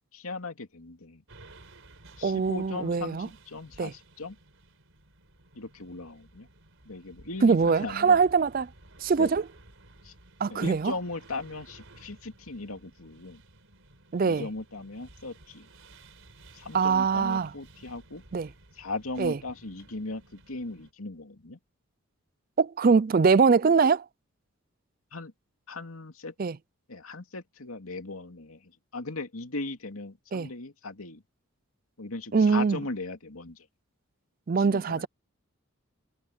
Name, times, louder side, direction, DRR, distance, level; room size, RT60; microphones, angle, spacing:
voice 1, 0.1-1.2 2.2-4.4 5.5-6.5 6.9-8.2 9.2-9.3 10.0-10.1 10.5-13.4 14.2-15.7 16.5-18.2 18.7-21.6 25.1-25.3 25.7-26.3 26.9-31.2 32.0-33.7 34.6-35.1, left 3 dB, 85° left, 2.6 m, -38 dB
sound 1, 1.3-20.9, right 2 dB, 70° right, 4.5 m, -55 dB
voice 2, 2.2-3.3 3.8-3.9 7.4-8.7 9.0-9.4 10.4-10.9 14.1-14.5 16.7-17.5 18.3-18.5 19.2-19.4 22.6-24.0 26.4-26.6 30.3-30.5 32.3-32.8 34.5-35.1, right 5 dB, 40° right, 0.4 m, -23 dB
head